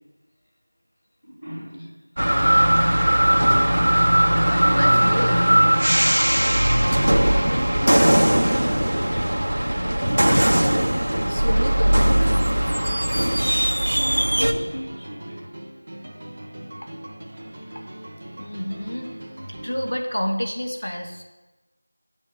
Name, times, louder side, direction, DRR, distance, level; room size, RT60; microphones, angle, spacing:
voice 1, 1.2-2.0 7.8-10.4 13.0-15.4 19.4-19.5, equal, 5° left, -14 dB, 2.0 m, -37 dB
sound 1, 2.2-14.5, right 1 dB, 60° right, 1.1 m, -19 dB
voice 2, 2.3-3.2 4.5-5.7 11.3-12.1 16.8-16.9 17.8-17.9 18.4-19.2 19.5-21.2, equal, 70° left, 3 dB, 1.8 m, -30 dB
sound 2, 3.3-19.9, right 1 dB, 15° right, 0.7 m, -40 dB
10.5 x 7.2 x 8.0 m, 1.1 s
figure-of-eight pair, 180°, 0 cm